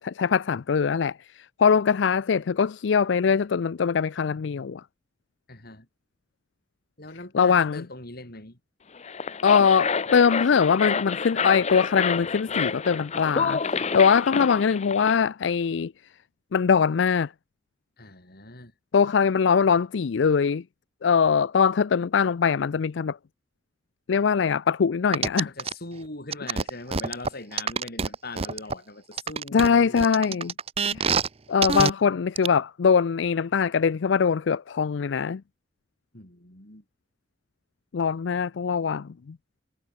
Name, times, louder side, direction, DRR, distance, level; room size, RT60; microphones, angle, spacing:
voice 1, 0.0-4.8 7.3-7.8 9.4-15.9 16.5-17.3 18.9-20.6 21.0-23.2 24.1-25.5 29.5-30.5 30.9-31.2 31.5-35.4 37.9-39.4, left 6 dB, 70° left, 0.4 m, -22 dB
voice 2, 5.5-5.9 7.0-8.6 18.0-18.7 25.4-30.1 36.1-36.8, left 2 dB, 55° left, 6.3 m, -41 dB
sound 1, 8.9-15.2, left 5 dB, 40° left, 0.8 m, -29 dB
sound 2, 25.1-25.7 26.3-28.7 29.2-31.3 31.6-31.9 32.4-32.5, right 5 dB, 35° right, 0.7 m, -26 dB
head